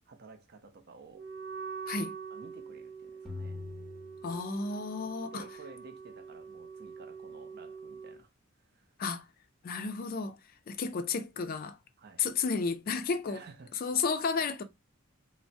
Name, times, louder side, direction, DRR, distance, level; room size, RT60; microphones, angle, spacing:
voice 1, 0.1-1.3 2.3-3.6 4.9-8.3 8.7-8.9 12.0-12.3 13.3-13.7, right 4 dB, 50° right, 0.5 m, -53 dB
Wind instrument woodwind instrument, 1.1-8.2, right 5 dB, 70° right, 1.0 m, -44 dB
sound 1, 3.3-5.0, left 3 dB, ahead, 0.6 m, -44 dB
voice 2, 4.2-5.4 9.0-9.3 9.6-10.4 10.7-11.8 12.2-13.4 13.8-14.6, left 5 dB, 45° left, 0.4 m, -32 dB
3.2 x 2.0 x 2.5 m
head